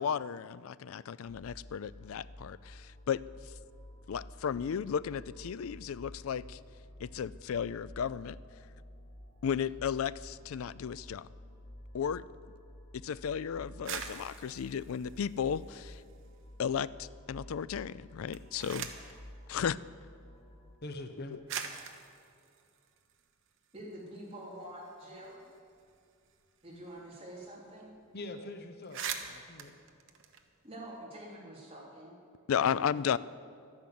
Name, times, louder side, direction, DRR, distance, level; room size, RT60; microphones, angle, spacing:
voice 1, 0.0-3.2 4.1-6.6 7.0-8.4 9.4-11.3 11.9-12.2 12.9-16.0 16.6-18.9 19.5-19.8 32.5-33.2, left 7 dB, 75° left, 18 dB, 0.4 m, -34 dB
sound 1, 1.2-20.7, left 1 dB, 30° left, 1.8 m, -51 dB
sound 2, 13.7-16.3 16.6-17.3 18.1-19.2 20.2-20.3 21.1-21.2 21.5-23.8 24.2-24.3 24.5-27.1 27.4-27.5 27.8-28.0 28.4-28.5 28.7-31.0, right 7 dB, 65° right, 1.1 m, -44 dB
voice 2, 20.8-21.4 28.1-29.8 32.6-32.9, left 2 dB, 50° left, 7 dB, 0.9 m, -44 dB
voice 3, 23.7-25.4 26.6-27.9 30.6-32.2 32.6-32.9, right 1 dB, 30° right, -5 dB, 3.8 m, -46 dB
12.0 x 11.0 x 7.7 m, 2.4 s
head